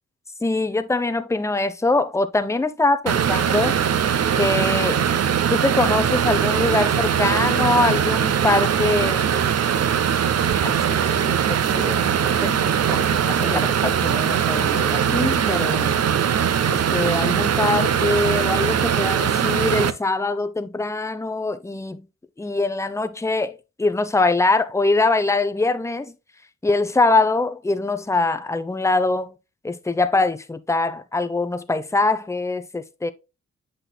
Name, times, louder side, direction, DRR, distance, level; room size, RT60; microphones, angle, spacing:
voice 1, 0.4-3.8 4.4-5.0 5.5-9.5 10.6-11.6 11.8-12.5 12.9-16.0 16.7-22.0 22.4-26.1 26.6-29.3 29.6-33.1, left 3 dB, 10° left, 0.7 m, -23 dB
sound 1, 3.1-19.9, right 8 dB, 55° right, 0.6 m, -21 dB
7.7 x 6.0 x 2.3 m
supercardioid pair, 50°, 30 cm